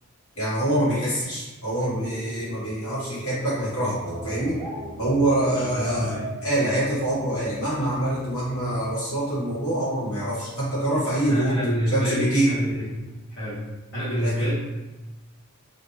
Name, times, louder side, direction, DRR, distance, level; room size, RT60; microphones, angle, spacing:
voice 1, 0.3-4.6 5.0-6.1 6.4-11.6 11.9-12.6 14.2-14.3, right 1 dB, 70° left, -9 dB, 1.2 m, -25 dB
sound 1, 1.9-4.8 5.8-8.8, equal, 5° left, 0.7 m, -42 dB
sound 2, 4.0-8.9, right 2 dB, 25° right, 0.4 m, -41 dB
voice 2, 5.5-6.3 11.3-13.0 13.4-13.7 13.9-14.5, equal, 55° left, -13 dB, 0.9 m, -28 dB
2.4 x 2.1 x 3.0 m, 1.1 s
head